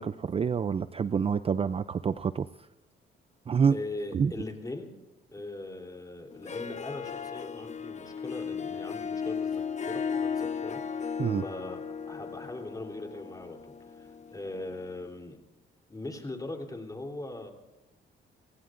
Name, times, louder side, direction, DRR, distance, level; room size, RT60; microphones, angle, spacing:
voice 1, 0.0-2.5 3.5-3.8 4.1-4.3 11.2-11.4, right 6 dB, 30° right, 14 dB, 0.4 m, -27 dB
voice 2, 3.7-4.9 5.3-15.4 15.9-17.5, left 2 dB, 20° left, 2 dB, 3.4 m, -40 dB
Harp, 6.3-14.9, left 6 dB, 35° left, 0.8 m, -36 dB
29.0 x 17.5 x 2.6 m, 1.0 s
cardioid pair, 90°, 20 cm